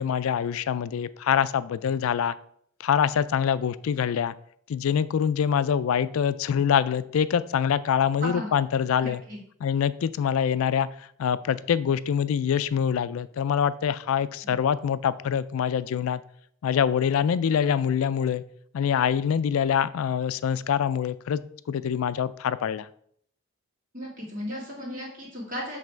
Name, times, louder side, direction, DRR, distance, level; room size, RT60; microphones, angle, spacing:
voice 1, 0.0-2.3 2.8-4.3 4.7-9.2 9.6-10.9 11.2-16.2 16.6-18.4 18.7-21.4 21.7-22.9, left 8 dB, 75° left, 16 dB, 0.3 m, -25 dB
voice 2, 8.2-8.5 9.0-9.4 14.4-14.5 23.9-25.8, equal, 40° right, -3 dB, 2.2 m, -35 dB
7.4 x 3.4 x 4.4 m, 0.65 s
head